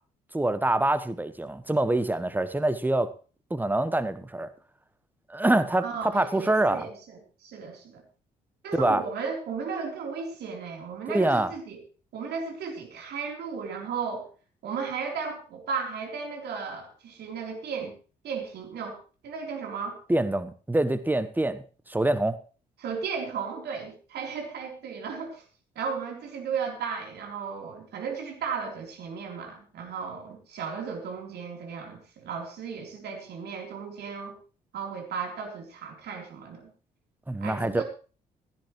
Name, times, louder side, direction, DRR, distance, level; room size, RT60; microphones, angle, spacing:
voice 1, 0.3-3.1 3.5-4.5 5.3-6.9 8.7-9.0 11.1-11.5 20.1-22.4 37.3-37.8, right 2 dB, 10° right, 13 dB, 1.1 m, -25 dB
voice 2, 5.8-8.0 8.6-11.8 12.1-14.3 14.6-17.9 18.2-19.0 19.2-20.0 22.8-25.4 25.8-34.4 34.7-36.7 37.4-37.8, right 5 dB, 55° right, 2 dB, 3.9 m, -35 dB
16.0 x 13.5 x 3.2 m, 0.36 s
figure-of-eight pair, 45°, 20 cm